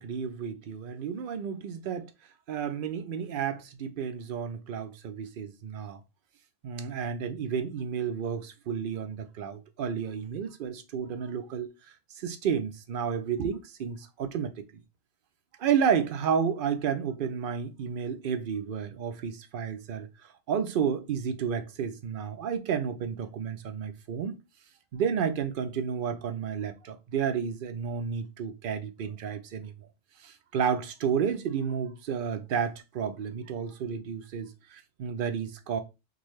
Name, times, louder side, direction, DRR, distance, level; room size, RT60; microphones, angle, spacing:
voice 1, 0.0-2.1 2.5-6.0 6.6-11.7 12.1-14.8 15.6-24.4 24.9-29.9 30.2-35.8, right 7 dB, 60° right, 0.6 m, -31 dB
3.8 x 2.7 x 3.1 m
omnidirectional pair, 1.2 m